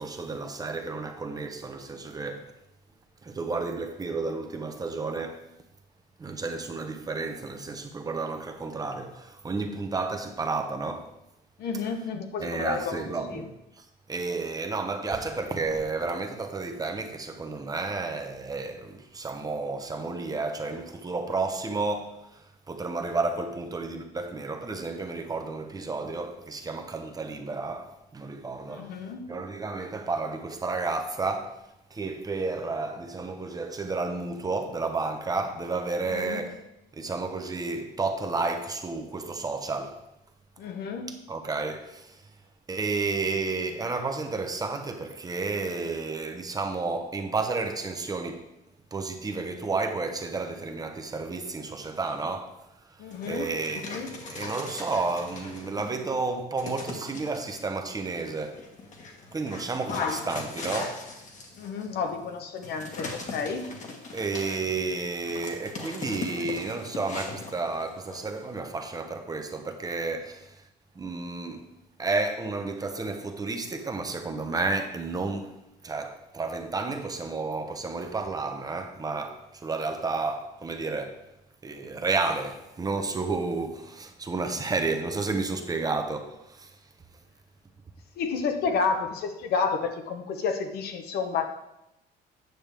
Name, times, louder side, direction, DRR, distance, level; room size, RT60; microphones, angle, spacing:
voice 1, 0.0-2.5 3.2-5.4 6.2-11.1 12.4-13.5 14.1-28.9 29.3-31.6 31.9-36.6 36.9-40.0 41.3-42.2 42.7-48.4 48.9-52.5 53.3-58.6 59.3-61.0 64.1-70.5 70.9-71.6 72.0-75.6 75.8-81.2 81.6-86.7, right 3 dB, 20° right, 0.8 m, -31 dB
voice 2, 11.6-13.0 13.3-13.4 28.7-29.3 36.0-36.4 40.6-41.1 53.0-53.5 53.9-54.1 59.9-60.2 61.6-63.7 88.2-91.5, left 5 dB, 70° left, 1.0 m, -30 dB
Dog, 53.1-56.0 56.6-57.6 58.2-68.6, left 3 dB, 45° left, 1.5 m, -40 dB
9.1 x 6.0 x 3.4 m
cardioid pair, 110°, 17 cm